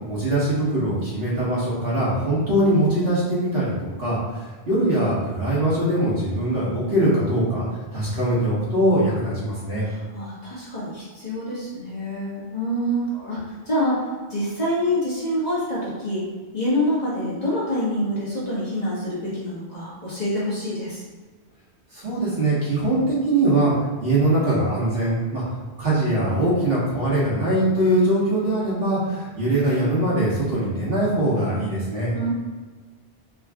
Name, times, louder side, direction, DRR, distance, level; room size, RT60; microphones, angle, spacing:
voice 1, 0.1-3.7 4.0-7.6 7.9-9.8 13.1-13.3 21.9-25.4 25.8-32.1, right 1 dB, 60° right, -8 dB, 1.5 m, -22 dB
voice 2, 9.8-16.2 16.5-21.0 32.1-32.3, equal, 40° left, -9 dB, 1.3 m, -26 dB
3.7 x 2.3 x 3.6 m, 1.4 s
omnidirectional pair, 1.1 m